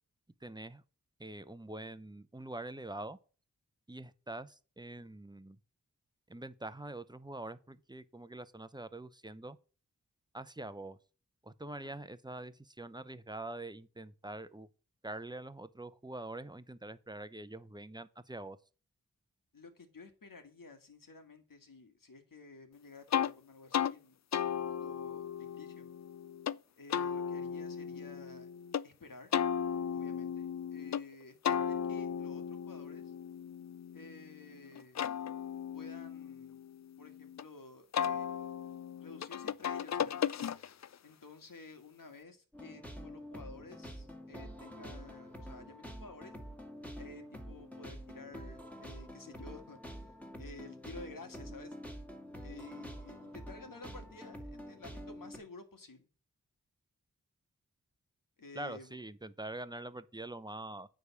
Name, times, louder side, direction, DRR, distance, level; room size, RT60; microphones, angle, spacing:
voice 1, 0.4-0.8 1.2-3.2 3.9-5.6 6.3-9.6 10.3-11.0 11.4-14.7 15.0-18.6 58.5-60.9, right 2 dB, 10° right, 0.7 m, -44 dB
voice 2, 19.5-25.9 26.8-28.5 28.8-29.3 29.9-33.1 33.9-35.0 35.7-36.6 37.0-38.4 39.0-40.2 41.0-46.3 47.0-50.1 50.4-51.8 52.4-56.1 58.4-59.0, left 3 dB, 70° left, 1.8 m, -52 dB
sound 1, 23.1-23.3 23.7-23.9 24.3-26.6 26.9-28.8 29.3-31.0 31.4-34.3 34.7-37.4 37.9-40.9, left 8 dB, 55° left, 0.4 m, -36 dB
sound 2, 42.5-55.4, equal, 5° left, 2.1 m, -47 dB
9.3 x 3.6 x 6.9 m
cardioid pair, 45°, 34 cm